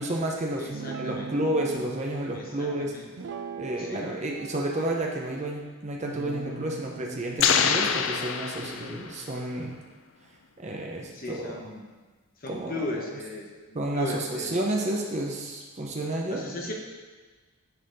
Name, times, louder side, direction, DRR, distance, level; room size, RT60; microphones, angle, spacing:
voice 1, 0.0-0.7 1.0-2.9 3.6-9.8 10.6-11.6 12.5-12.8 13.7-16.4, right 1 dB, 30° right, 0 dB, 0.7 m, -31 dB
voice 2, 0.6-1.3 2.3-3.1 3.8-4.1 8.7-9.1 11.1-12.0 12.4-14.5 15.9-16.0 16.3-16.7, left 1 dB, 40° left, -1 dB, 1.1 m, -37 dB
Guitar, 0.7-1.9 3.2-4.1 4.4-5.5 6.1-9.6, right 5 dB, 55° right, 0.3 m, -41 dB
sound 1, 7.4-9.3, left 7 dB, 60° left, 0.4 m, -25 dB
9.3 x 4.1 x 4.1 m, 1.4 s
head